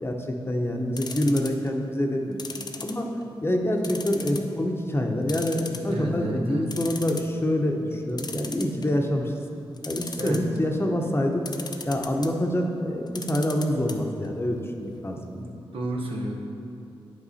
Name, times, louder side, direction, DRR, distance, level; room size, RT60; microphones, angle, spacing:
voice 1, 0.0-2.4 2.8-3.1 3.4-9.3 9.8-11.4 11.8-15.2, left 1 dB, 25° left, 2 dB, 0.9 m, -26 dB
sound 1, 1.0-1.7 2.4-3.4 3.8-4.5 4.9-5.0 5.3-6.1 6.4-6.5 6.7-7.3 8.2-9.1 9.8-10.6 11.5-12.3 13.1-13.9 14.2-14.3 14.6-14.7, left 4 dB, 45° left, 0.6 m, -36 dB
voice 2, 5.8-6.6 10.2-10.4 15.3-16.4, right 1 dB, 65° right, -1 dB, 1.0 m, -31 dB
8.2 x 4.7 x 4.2 m, 2.7 s
supercardioid pair, 40°, 10 cm